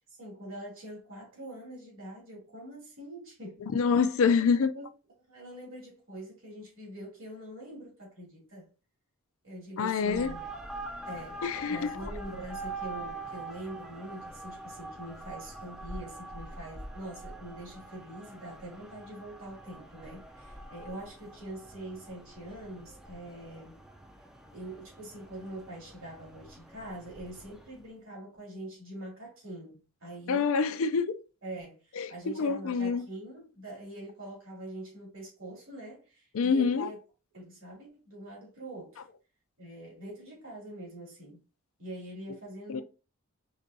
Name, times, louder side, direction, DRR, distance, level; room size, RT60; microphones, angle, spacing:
voice 1, 0.1-3.6 3.9-4.8 5.3-8.7 9.4-10.4 11.1-23.8 24.5-30.5 31.4-37.0 37.3-39.1 39.6-41.4 41.8-42.8, right 1 dB, 65° right, 2.6 m, -44 dB
voice 2, 3.7-4.7 9.8-10.4 11.4-11.9 30.3-31.2 32.0-33.0 36.3-36.9 42.7-42.8, left 5 dB, 70° left, 0.4 m, -26 dB
sound 1, 9.9-27.8, right 2 dB, ahead, 0.4 m, -44 dB
5.0 x 3.4 x 2.7 m
head